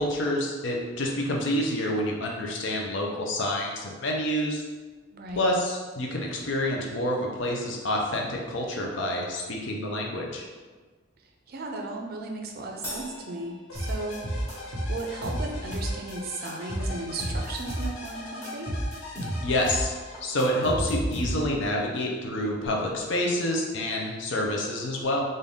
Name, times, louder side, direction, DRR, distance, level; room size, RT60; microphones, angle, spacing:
voice 1, 0.0-4.6 5.4-10.5 19.4-25.2, left 1 dB, 60° left, -1 dB, 0.7 m, -28 dB
voice 2, 5.1-5.5 11.5-14.2 14.7-18.7, right 2 dB, 50° right, 2 dB, 0.5 m, -36 dB
Crash cymbal, 12.8-14.5, equal, 10° left, 1.2 m, -41 dB
sound 1, 13.7-20.6, left 2 dB, 90° left, 0.9 m, -42 dB
sound 2, 13.7-16.1 16.4-18.1 18.4-21.6, right 1 dB, 35° left, 1.3 m, -31 dB
3.9 x 2.6 x 3.5 m, 1.4 s
head